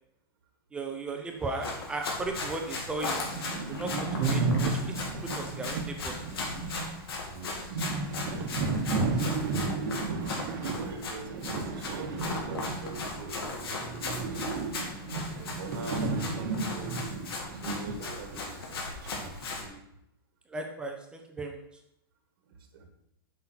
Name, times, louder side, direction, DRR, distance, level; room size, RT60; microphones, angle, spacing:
voice 1, 0.7-3.3 3.7-4.9 5.4-6.1 20.5-21.6, right 3 dB, 5° right, 3 dB, 0.5 m, -36 dB
Run, 1.4-19.7, left 3 dB, 75° left, 2.3 m, -37 dB
sound 1, 2.4-2.5 2.8-2.9 3.1-13.3 13.5-18.0 18.3-18.4 19.0-19.5, right 3 dB, 45° right, 1.1 m, -33 dB
voice 2, 7.3-14.4 14.6-19.8 22.4-22.9, right 4 dB, 70° right, 4 dB, 1.4 m, -45 dB
7.6 x 5.6 x 4.3 m, 0.79 s
supercardioid pair, 165°, 13 cm